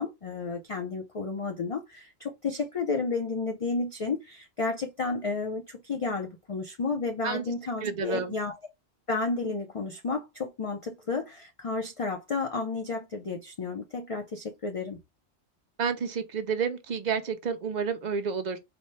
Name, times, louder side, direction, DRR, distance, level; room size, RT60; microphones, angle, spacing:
voice 1, 0.0-8.6 9.1-15.0, left 4 dB, 45° left, 0.4 m, -32 dB
voice 2, 7.8-8.3 15.8-18.6, right 6 dB, 50° right, 0.5 m, -30 dB
4.2 x 2.1 x 3.0 m
omnidirectional pair, 1.2 m